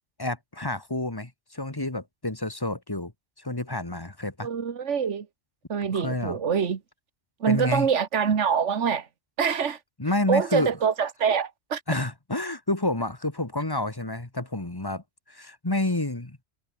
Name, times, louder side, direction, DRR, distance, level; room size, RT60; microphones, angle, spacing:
voice 1, 0.2-3.1 3.4-4.5 5.9-6.4 7.5-7.9 10.0-10.7 11.9-16.4, left 2 dB, 20° left, 1.9 m, -29 dB
voice 2, 4.4-5.3 5.7-6.8 7.4-9.1 9.4-9.8 10.3-11.8, right 7 dB, 80° right, 1.7 m, -25 dB
omnidirectional pair, 1.2 m